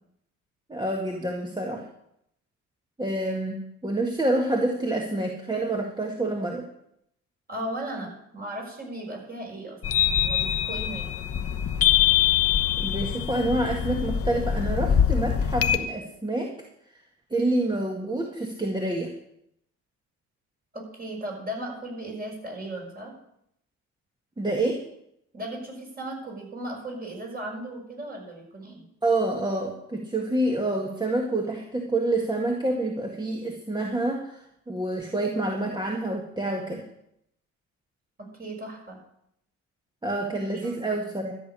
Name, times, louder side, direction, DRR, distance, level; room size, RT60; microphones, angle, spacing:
voice 1, 0.7-1.9 3.0-6.7 12.8-16.5 16.9-17.0 17.3-19.1 24.4-24.8 29.0-36.8 40.0-41.3, right 2 dB, 15° right, 1 dB, 1.8 m, -27 dB
voice 2, 7.5-9.8 10.1-11.0 20.7-23.1 25.3-28.8 38.2-39.0 40.5-41.1, right 1 dB, 30° right, 0 dB, 5.8 m, -36 dB
sound 1, 9.8-15.8, left 9 dB, 50° left, 1.0 m, -24 dB
13.0 x 6.7 x 9.8 m, 0.78 s
cardioid pair, 90°, 30 cm